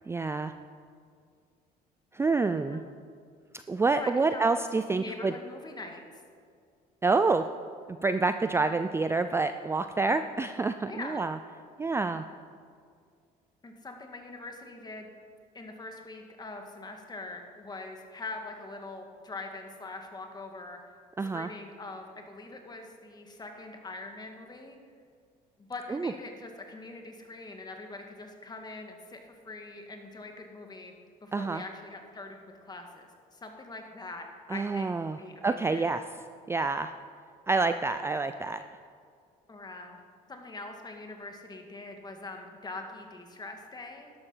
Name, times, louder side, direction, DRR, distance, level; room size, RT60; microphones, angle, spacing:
voice 1, 0.1-0.5 2.1-2.8 3.7-5.3 7.0-7.5 7.9-11.4 11.8-12.2 21.2-21.5 25.9-26.1 31.3-31.6 34.5-36.0 36.5-36.9 37.5-38.6, right 3 dB, 15° right, 10 dB, 0.4 m, -27 dB
voice 2, 4.0-4.6 4.9-6.0 10.9-11.3 13.6-15.1 15.5-20.8 21.2-24.8 25.6-30.9 31.2-35.9 39.5-40.0 40.3-44.1, left 2 dB, 25° left, 4 dB, 1.9 m, -43 dB
12.0 x 12.0 x 5.6 m, 2.2 s
cardioid pair, 110°, 17 cm